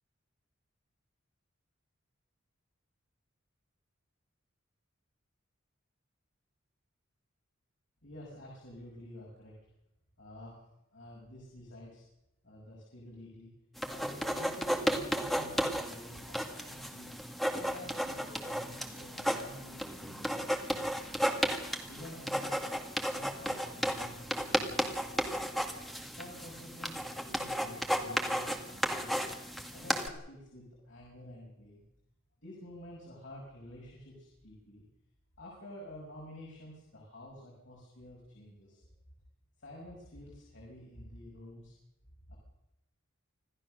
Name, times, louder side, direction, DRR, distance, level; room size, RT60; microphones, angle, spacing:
voice 1, 8.0-9.5 10.2-10.6 10.9-12.0 12.4-13.5 13.9-17.1 17.5-21.3 21.9-22.7 23.1-25.5 26.1-29.1 29.7-31.8 32.4-34.8 35.4-38.9 39.6-41.8 42.3-42.4, left 1 dB, 65° left, -3 dB, 6.2 m, -50 dB
sound 1, 13.8-30.1, equal, ahead, 1.9 m, -34 dB
26.0 x 15.5 x 6.5 m, 0.87 s
head